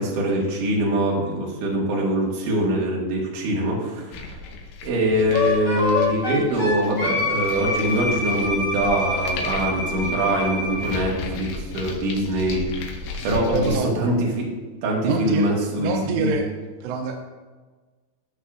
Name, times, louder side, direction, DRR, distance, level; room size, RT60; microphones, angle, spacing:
voice 1, 0.0-4.4 4.8-12.9 13.2-14.4 14.8-15.9 16.2-16.3, right 1 dB, 60° right, -3 dB, 2.4 m, -23 dB
sound 1, 4.1-13.8, left 3 dB, 90° left, 3.6 m, -35 dB
Wind instrument woodwind instrument, 5.3-11.0, left 3 dB, 30° left, 2.3 m, -26 dB
voice 2, 13.2-13.9 15.0-15.5 15.8-16.5 16.8-17.2, right 5 dB, 90° right, 3 dB, 2.4 m, -26 dB
14.5 x 6.2 x 2.5 m, 1.4 s
omnidirectional pair, 5.7 m